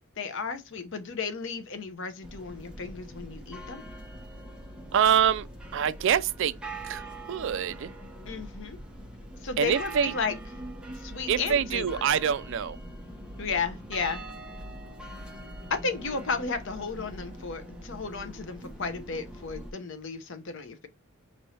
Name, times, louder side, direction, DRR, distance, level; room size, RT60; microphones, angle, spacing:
voice 1, 0.2-3.8 8.3-8.8 9.4-10.3 11.0-12.0 13.4-14.2 15.7-20.9, left 4 dB, 60° left, 0.8 m, -33 dB
sound 1, 2.2-19.7, right 1 dB, 5° right, 1.0 m, -42 dB
voice 2, 4.9-5.5 5.7-6.5 6.8-7.9 9.6-10.1 11.3-12.8, right 8 dB, 65° right, 0.3 m, -25 dB
5.2 x 3.2 x 2.8 m
head